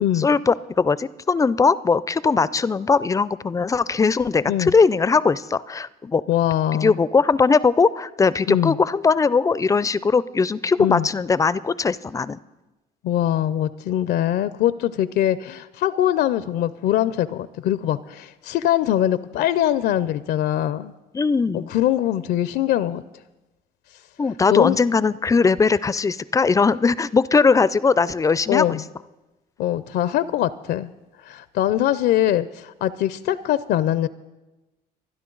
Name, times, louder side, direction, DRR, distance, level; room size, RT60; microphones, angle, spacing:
voice 1, 0.2-6.2 6.8-12.4 21.1-21.7 24.2-28.8, left 4 dB, 20° left, 18 dB, 0.4 m, -20 dB
voice 2, 6.3-7.0 8.5-8.8 10.8-11.1 13.0-20.9 21.5-23.0 24.5-24.8 28.5-28.8 29.6-30.9 31.2-34.1, left 12 dB, 75° left, 16 dB, 0.5 m, -22 dB
24.5 x 10.5 x 3.9 m, 1.1 s
cardioid pair, 110°, 17 cm